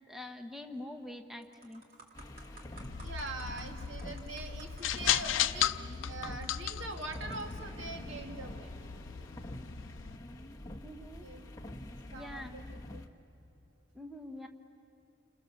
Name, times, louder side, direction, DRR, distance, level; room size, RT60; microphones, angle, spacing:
voice 1, 0.1-1.8 10.8-11.3 12.1-12.6 13.9-14.5, left 1 dB, ahead, 5 dB, 1.0 m, -45 dB
sound 1, 0.8-1.1 1.4-7.8 8.5-8.7, right 2 dB, 45° right, 2.8 m, -56 dB
sound 2, 2.1-13.1, left 1 dB, 20° left, 1.2 m, -46 dB
sound 3, 2.8-10.2, left 10 dB, 75° left, 0.6 m, -36 dB
voice 2, 3.0-5.8 6.1-8.7 11.2-11.5 12.1-13.0, right 3 dB, 70° right, 4 dB, 2.2 m, -43 dB
29.5 x 27.0 x 7.1 m, 2.8 s
head